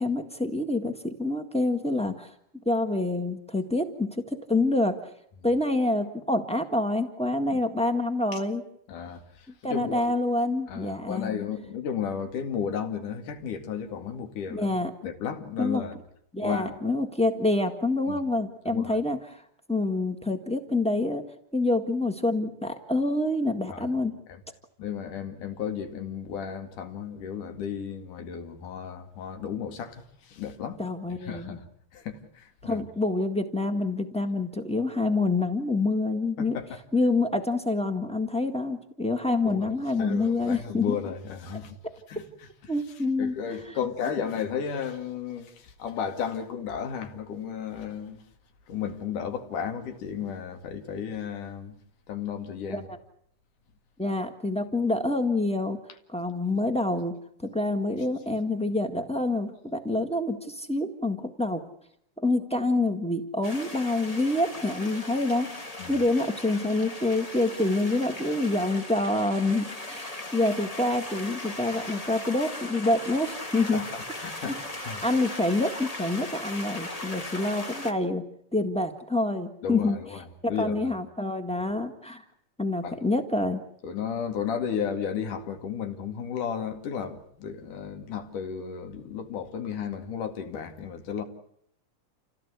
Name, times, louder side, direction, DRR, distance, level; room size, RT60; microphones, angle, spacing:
voice 1, 0.0-2.3 2.6-5.1 5.4-8.6 9.6-11.3 14.5-14.9 15.6-15.8 16.3-19.4 19.7-21.2 21.5-24.1 30.8-31.6 32.6-36.6 36.9-40.9 42.7-43.4 52.7-52.8 54.0-55.8 56.1-57.1 57.4-61.6 62.2-65.6 65.9-73.8 75.0-78.2 78.5-80.0 80.6-82.2 82.6-83.6, left 2 dB, 10° left, 0.3 m, -27 dB
voice 2, 8.9-10.1 10.7-14.7 15.0-16.0 16.4-16.9 18.1-18.2 18.7-19.0 23.7-23.9 24.3-24.4 24.8-30.8 31.2-31.7 31.9-32.9 36.4-36.7 39.5-39.7 40.0-41.8 42.1-42.2 42.6-42.7 43.2-48.2 48.7-51.8 52.1-52.9 65.8-66.0 73.7-74.6 74.9-75.0 79.6-80.9 82.8-82.9 83.8-91.2, left 7 dB, 85° left, 3.7 m, -34 dB
sound 1, 63.4-77.9, left 2 dB, 25° left, 0.8 m, -38 dB
28.5 x 17.0 x 8.3 m
omnidirectional pair, 3.5 m